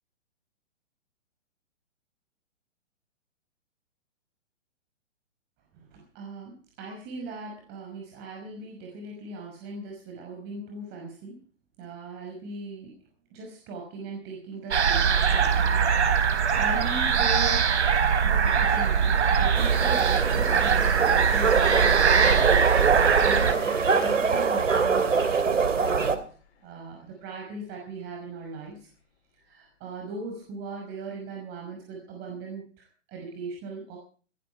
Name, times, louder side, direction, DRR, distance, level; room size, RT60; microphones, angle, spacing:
voice 1, 5.7-11.4 11.8-13.0 13.3-17.7 18.2-26.3 26.6-28.9 29.3-34.0, right 3 dB, 25° right, 1 dB, 5.7 m, -39 dB
sound 1, 14.7-23.5, right 6 dB, 65° right, 3.8 m, -22 dB
Train, 18.8-27.1 28.7-28.9, left 6 dB, 60° left, 7.4 m, -46 dB
sound 2, 19.5-26.2, right 5 dB, 85° right, 3.0 m, -24 dB
19.0 x 15.5 x 4.7 m, 0.41 s
hypercardioid pair, 140°, 37 cm